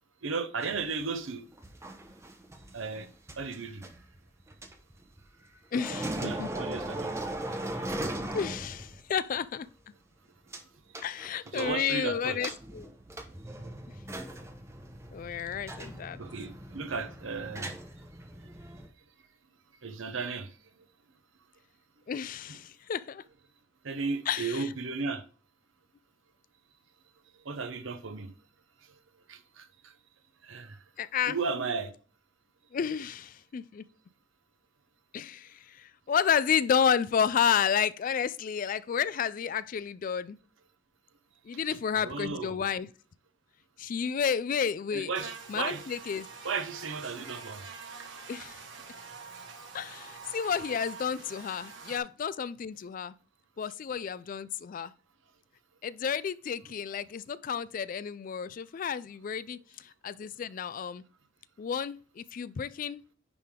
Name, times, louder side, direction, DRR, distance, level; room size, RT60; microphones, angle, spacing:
voice 1, 0.2-1.5 2.7-3.1 3.4-3.9 5.9-7.1 11.5-12.5 13.6-13.8 16.2-17.7 19.8-20.5 23.8-25.2 27.4-28.3 29.3-29.9 30.4-30.8 31.3-31.9 42.0-42.6 44.9-45.8 46.4-47.7, right 4 dB, 80° right, 0.8 m, -35 dB
sound 1, 0.6-5.5 5.7-9.1 9.4-9.5 10.5-10.6 10.9-12.0 12.4-18.9, right 1 dB, 15° right, 0.8 m, -39 dB
voice 2, 5.7-6.5 8.3-9.7 11.0-12.9 15.1-16.2 22.1-23.2 24.3-24.7 31.0-31.4 32.7-33.9 35.1-40.4 41.4-42.9 43.8-45.1 45.5-46.3 48.3-48.6 49.7-53.1 53.6-54.9 55.8-61.0 61.6-63.0, left 7 dB, 45° left, 0.3 m, -31 dB
Buzz, 45.1-52.0, right 5 dB, 65° right, 1.2 m, -45 dB
9.7 x 3.4 x 3.7 m
head